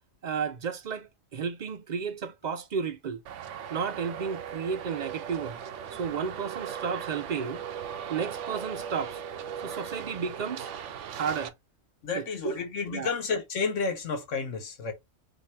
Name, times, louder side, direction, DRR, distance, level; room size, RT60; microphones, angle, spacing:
voice 1, 0.2-3.2 3.7-5.6 5.9-7.6 8.1-9.2 9.6-10.7 11.1-11.5 12.2-12.6 12.9-13.1, right 6 dB, 50° right, 0.5 m, -33 dB
Traffic noise roadway noise, 3.3-11.5, right 8 dB, 80° right, 1.0 m, -38 dB
voice 2, 12.0-14.9, left 4 dB, 90° left, 1.4 m, -31 dB
5.7 x 2.7 x 3.3 m
omnidirectional pair, 1.3 m